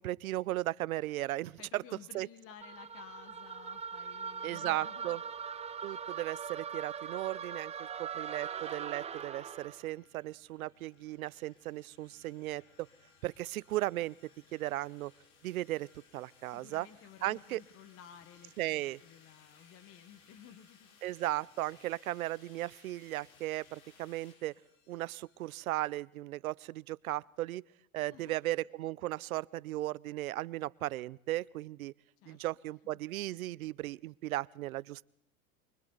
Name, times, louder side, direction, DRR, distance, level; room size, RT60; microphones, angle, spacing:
voice 1, 0.0-1.8 2.1-2.3 4.4-5.2 5.8-12.9 13.2-14.2 14.5-15.1 15.4-16.9 17.2-17.6 18.6-19.0 21.0-24.5 24.9-27.6 27.9-31.9 32.3-35.0, right 16 dB, 85° right, 22 dB, 0.7 m, -36 dB
voice 2, 1.6-5.2 16.4-21.0 28.0-28.4 32.2-32.4, left 9 dB, 35° left, 10 dB, 1.4 m, -55 dB
sound 1, 2.6-9.9, right 7 dB, 15° right, 1.0 m, -41 dB
sound 2, 9.2-26.0, left 5 dB, 80° left, 5.0 m, -63 dB
28.5 x 24.0 x 4.0 m, 0.77 s
supercardioid pair, 130°, 41 cm